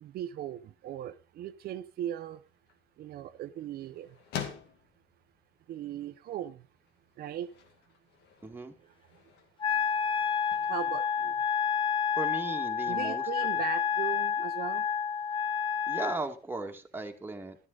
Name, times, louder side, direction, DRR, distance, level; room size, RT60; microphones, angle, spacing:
voice 1, 0.0-2.4 3.0-4.1 5.7-6.6 7.2-7.5 10.7-11.3 12.9-14.8, right 11 dB, 65° right, 9 dB, 0.8 m, -38 dB
sound 1, 2.3-12.1, left 9 dB, 85° left, 2.0 m, -48 dB
voice 2, 8.4-8.7 12.2-13.2 15.9-17.6, right 3 dB, 10° right, 3 dB, 1.9 m, -37 dB
Wind instrument woodwind instrument, 9.6-16.2, left 7 dB, 30° left, 0.8 m, -29 dB
13.0 x 11.0 x 3.9 m, 0.34 s
cardioid pair, 110°, 17 cm